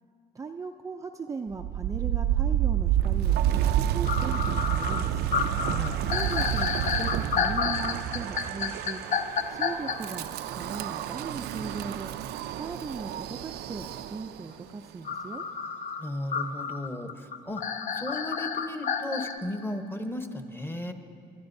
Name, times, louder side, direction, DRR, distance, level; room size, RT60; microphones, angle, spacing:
voice 1, 0.3-5.2 6.1-9.0 9.5-12.1 12.6-15.4, right 4 dB, 20° right, 3 dB, 0.4 m, -38 dB
Wind, 1.5-14.5, right 11 dB, 75° right, 0.4 m, -29 dB
sound 1, 3.6-3.7 4.0-10.0 15.0-19.4, left 6 dB, 45° left, 0.7 m, -30 dB
voice 2, 5.6-6.0 16.0-17.6 17.9-20.9, left 1 dB, 15° left, 6 dB, 1.0 m, -35 dB
27.5 x 12.0 x 2.7 m, 2.6 s
cardioid pair, 110°, 17 cm